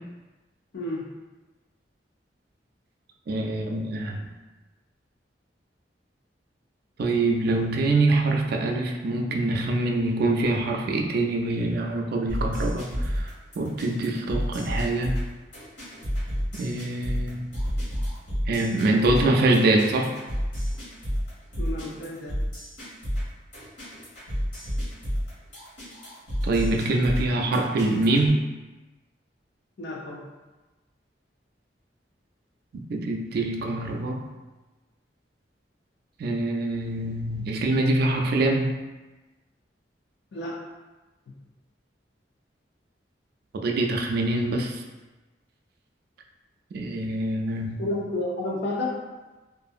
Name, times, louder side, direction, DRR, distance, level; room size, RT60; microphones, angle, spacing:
voice 1, 3.3-4.3 7.0-15.2 16.5-17.4 18.5-20.2 26.4-28.4 32.7-34.3 36.2-38.8 43.5-44.8 46.7-47.8, right 2 dB, 60° right, 2 dB, 0.3 m, -24 dB
sound 1, 12.3-28.3, equal, 85° left, 1.3 m, -30 dB
voice 2, 21.6-22.4 29.8-30.2 40.3-40.5 47.8-49.0, left 2 dB, 65° left, -4 dB, 0.4 m, -30 dB
2.7 x 2.5 x 2.4 m, 1.2 s
head